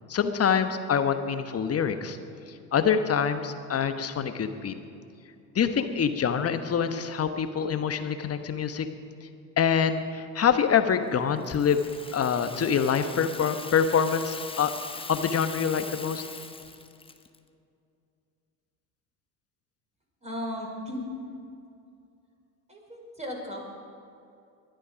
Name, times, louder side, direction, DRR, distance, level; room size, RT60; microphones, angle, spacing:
voice 1, 0.1-2.2 2.7-4.7 5.5-8.9 9.6-11.8 12.1-14.7 15.1-16.2, left 7 dB, 30° left, 9 dB, 1.2 m, -25 dB
Rattle (instrument), 11.4-17.4, left 4 dB, 10° left, 0.9 m, -41 dB
voice 2, 20.2-21.1 22.7-23.7, left 1 dB, 15° right, -1 dB, 5.0 m, -36 dB
21.0 x 12.0 x 5.2 m, 2.5 s
hypercardioid pair, 70°, 50 cm